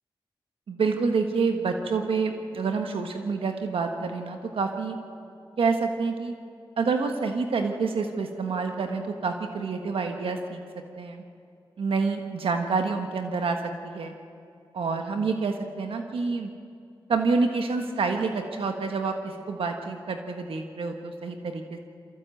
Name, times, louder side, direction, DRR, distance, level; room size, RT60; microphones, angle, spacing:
voice 1, 0.7-5.0 5.6-6.3 6.8-10.6 11.0-11.2 11.8-14.1 14.7-16.5 17.1-21.8, right 4 dB, 80° right, 5 dB, 1.4 m, -28 dB
23.5 x 15.0 x 7.9 m, 2.5 s
cardioid pair, 50°, 9 cm